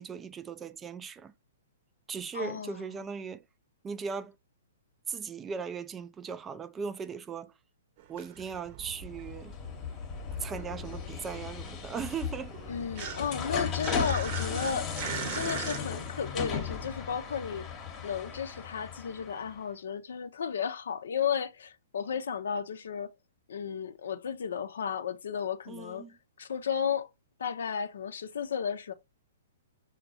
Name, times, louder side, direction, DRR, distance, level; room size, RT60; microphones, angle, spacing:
voice 1, 0.0-1.3 2.1-3.4 3.8-4.4 5.1-7.5 8.1-9.5 10.4-12.5 25.7-26.2, right 6 dB, 15° right, 0.3 m, -38 dB
voice 2, 2.3-2.9 12.7-17.6 18.0-23.1 23.5-26.1 26.4-27.1 27.4-28.9, left 7 dB, 60° left, 0.5 m, -33 dB
sound 1, 8.0-9.9 10.2-15.8, right 9 dB, 40° right, 0.8 m, -41 dB
sound 2, 8.9-19.6, left 6 dB, 25° left, 0.9 m, -37 dB
6.3 x 2.2 x 2.6 m
figure-of-eight pair, 115°, 0 cm